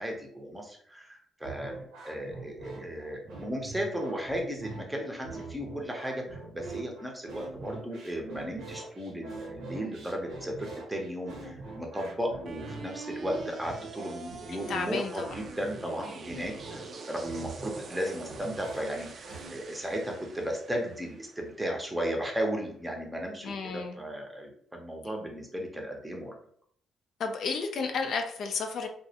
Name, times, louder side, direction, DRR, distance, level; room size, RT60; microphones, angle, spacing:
voice 1, 0.0-1.8 2.0-26.4, equal, 10° right, 1 dB, 0.6 m, -35 dB
sound 1, 1.4-19.5, right 3 dB, 80° right, 0.8 m, -43 dB
sound 2, 12.5-22.5, right 4 dB, 50° right, 0.4 m, -46 dB
voice 2, 14.7-15.3 23.4-24.0 27.2-28.9, left 4 dB, 65° left, 5 dB, 0.3 m, -32 dB
2.3 x 2.0 x 2.7 m, 0.62 s
cardioid pair, 90°, 0 cm